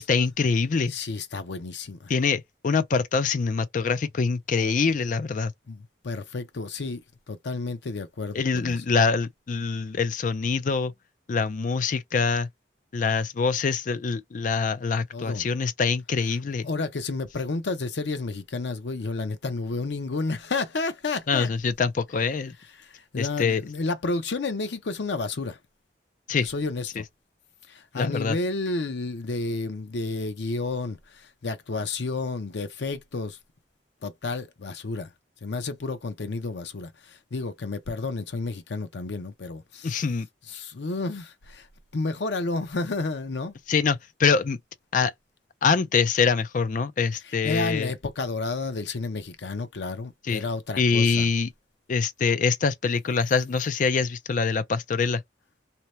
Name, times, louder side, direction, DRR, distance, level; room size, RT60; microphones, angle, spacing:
voice 1, 0.0-1.0 2.1-5.5 8.3-10.9 11.3-12.5 12.9-16.7 21.3-22.6 23.2-23.6 26.3-26.5 28.0-28.4 39.8-40.3 43.7-44.6 44.9-45.1 45.6-47.9 50.3-50.4 50.8-51.5 51.9-55.2, left 5 dB, 50° left, 0.4 m, -24 dB
voice 2, 0.9-2.1 5.7-8.8 15.1-15.5 16.6-21.5 22.8-25.6 26.4-27.1 27.7-33.4 34.0-35.1 35.4-40.0 40.5-41.7 41.9-43.5 47.3-51.3, left 3 dB, 80° left, 0.7 m, -31 dB
2.8 x 2.0 x 3.0 m
head